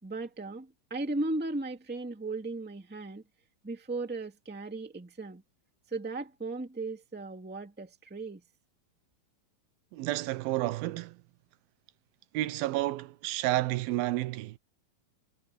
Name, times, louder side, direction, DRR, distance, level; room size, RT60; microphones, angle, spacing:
voice 1, 0.0-3.2 3.6-5.4 5.9-8.4, right 2 dB, 5° right, 1.1 m, -36 dB
voice 2, 9.9-11.2 12.3-14.6, right 16 dB, 90° right, 2.6 m, -31 dB
omnidirectional pair, 4.2 m